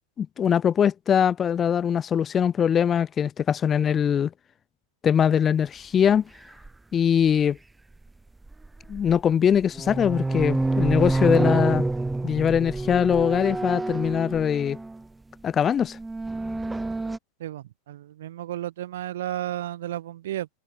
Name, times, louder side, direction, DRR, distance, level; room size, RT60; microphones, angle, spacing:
voice 1, 0.2-4.3 5.0-6.2 6.9-7.6 8.9-11.9 12.2-14.8 15.4-16.0, left 8 dB, 25° left, 0.6 m, -22 dB
sound 1, 6.6-6.7 8.5-9.2 9.6-15.0 15.8-17.2, right 2 dB, 10° right, 1.0 m, -27 dB
voice 2, 17.4-20.5, right 13 dB, 60° right, 0.5 m, -33 dB
figure-of-eight pair, 90°, 0 cm